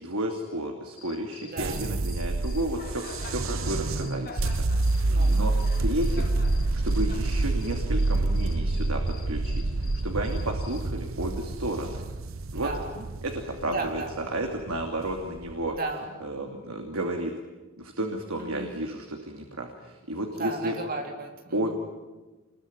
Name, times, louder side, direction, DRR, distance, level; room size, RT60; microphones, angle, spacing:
voice 1, 0.0-5.5 5.8-6.3 6.7-12.0 12.5-12.7 13.2-15.8 16.2-17.3 17.8-20.8 21.5-21.8, right 1 dB, 90° right, 2 dB, 2.8 m, -32 dB
Cricket, 0.9-10.9, left 5 dB, 45° left, 1.7 m, -47 dB
voice 2, 1.4-1.9 5.1-5.6 12.5-13.0 13.7-14.1 15.7-16.1 18.4-18.7 20.3-21.7, right 3 dB, 40° right, 2 dB, 4.0 m, -35 dB
sound 1, 1.6-15.8, right 2 dB, 70° right, 0.9 m, -28 dB
26.0 x 21.5 x 9.6 m, 1.2 s
head